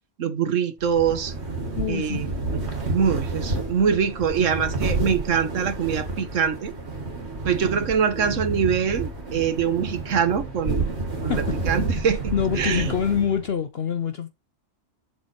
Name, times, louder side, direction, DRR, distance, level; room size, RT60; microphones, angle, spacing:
voice 1, 0.2-1.3 1.9-6.7 7.4-10.9 11.2-12.9, right 7 dB, 85° right, 1.5 m, -24 dB
sound 1, 0.8-13.5, right 3 dB, 60° right, 2.2 m, -30 dB
voice 2, 1.8-2.2 11.1-11.4 12.0-12.1 12.3-14.3, left 7 dB, 60° left, 0.9 m, -25 dB
7.6 x 6.2 x 4.3 m
omnidirectional pair, 1.3 m